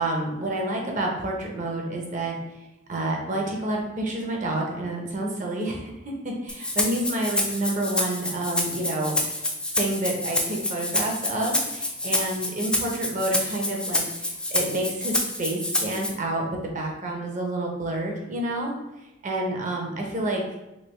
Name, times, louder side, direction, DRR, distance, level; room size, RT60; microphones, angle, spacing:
voice 1, 0.0-2.4 2.9-9.4 9.8-16.4 16.7-18.7 19.2-20.4, right 1 dB, 40° right, 0 dB, 0.6 m, -29 dB
Rattle (instrument), 6.5-16.1, left 1 dB, 5° left, 0.3 m, -28 dB
3.2 x 2.5 x 3.1 m, 1.0 s
head